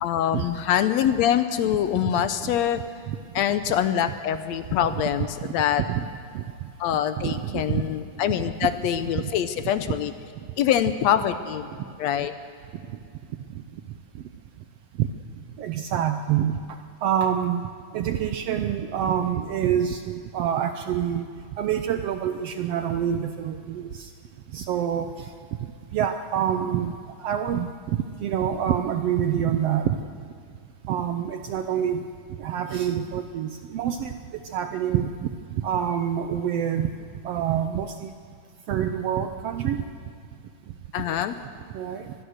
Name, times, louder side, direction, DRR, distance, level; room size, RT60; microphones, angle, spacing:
voice 1, 0.0-2.8 3.4-5.8 6.8-10.1 10.6-11.7 12.0-12.3 40.9-41.4, left 10 dB, 75° left, 11 dB, 1.8 m, -24 dB
voice 2, 7.2-7.8 8.6-8.7 9.1-9.3 15.0-15.1 15.6-16.6 17.0-21.3 21.6-24.1 24.5-25.3 25.9-26.9 27.2-30.0 30.9-32.0 32.4-34.2 34.5-35.1 35.6-36.9 37.2-38.1 38.7-39.8 41.7-42.1, right 9 dB, 75° right, 8 dB, 1.5 m, -26 dB
24.5 x 20.5 x 6.6 m, 2.3 s
omnidirectional pair, 3.5 m